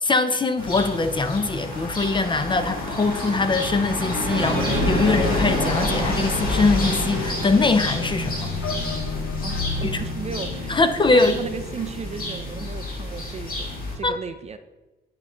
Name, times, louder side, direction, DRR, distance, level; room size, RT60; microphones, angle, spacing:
voice 1, 0.0-8.5 9.8-10.0 10.7-11.4 14.0-14.2, left 3 dB, 25° left, 9 dB, 0.5 m, -22 dB
sound 1, 0.6-13.9, left 2 dB, 45° left, 2.0 m, -29 dB
sound 2, 4.3-13.2, right 3 dB, 60° right, 0.9 m, -34 dB
sound 3, 4.7-11.9, left 4 dB, 80° left, 0.6 m, -32 dB
voice 2, 9.4-10.8 11.1-14.6, right 5 dB, 35° right, 10 dB, 0.4 m, -35 dB
9.6 x 3.8 x 3.7 m, 1.1 s
cardioid pair, 90°, 20 cm